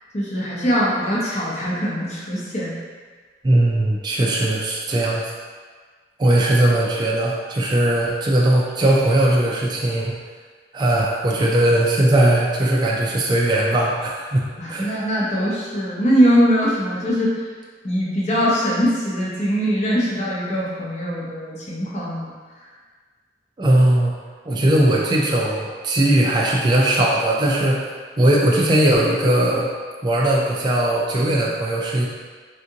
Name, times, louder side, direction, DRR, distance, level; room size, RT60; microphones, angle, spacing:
voice 1, 0.1-2.7 14.6-17.3 17.8-22.3, equal, 40° left, -6 dB, 0.8 m, -21 dB
voice 2, 3.4-5.3 6.2-10.1 10.7-14.9 23.6-24.1 24.5-27.9 28.2-29.7 30.0-32.1, right 1 dB, 25° right, -4 dB, 0.4 m, -19 dB
3.6 x 2.5 x 2.8 m, 1.5 s
head